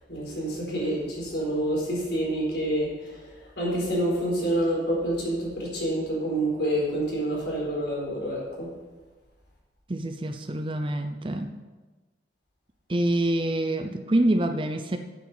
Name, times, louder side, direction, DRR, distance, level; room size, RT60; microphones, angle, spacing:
voice 1, 0.1-8.7, right 1 dB, 65° left, -4 dB, 4.2 m, -28 dB
voice 2, 9.9-11.6 12.9-15.0, right 1 dB, 25° right, 7 dB, 0.6 m, -26 dB
8.5 x 6.7 x 7.8 m, 1.3 s
head